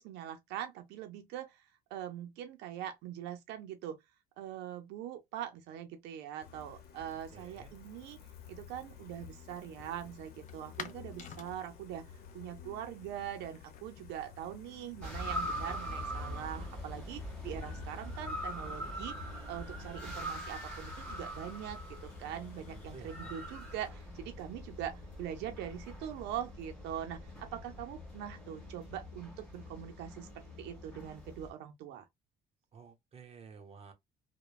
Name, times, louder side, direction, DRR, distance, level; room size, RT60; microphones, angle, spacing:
voice 1, 0.0-1.6 1.9-4.0 4.4-8.2 8.5-12.1 12.3-32.0, right 10 dB, 85° right, 0.5 m, -42 dB
Gull seagull, 6.4-23.9, left 7 dB, 65° left, 0.8 m, -54 dB
voice 2, 7.3-7.7 22.7-23.3 32.7-33.9, right 5 dB, 35° right, 0.8 m, -52 dB
sound 1, 8.9-26.5, left 8 dB, 45° left, 0.5 m, -56 dB
sound 2, 15.0-31.5, equal, 10° left, 1.6 m, -43 dB
2.9 x 2.1 x 2.3 m
cardioid pair, 110°, 17 cm